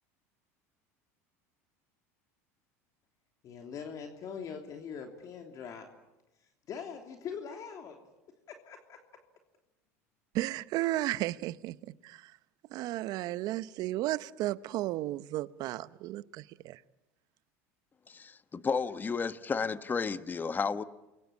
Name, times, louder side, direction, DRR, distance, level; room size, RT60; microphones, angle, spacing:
voice 1, 3.4-5.9 6.7-8.0 8.5-9.0, left 6 dB, 45° left, 3.1 m, -42 dB
voice 2, 10.3-11.8 12.0-12.3 12.7-16.8, right 16 dB, 60° right, 0.9 m, -34 dB
voice 3, 18.1-20.8, left 5 dB, 25° left, 1.3 m, -32 dB
29.0 x 23.0 x 8.7 m
hypercardioid pair, 90°, 8 cm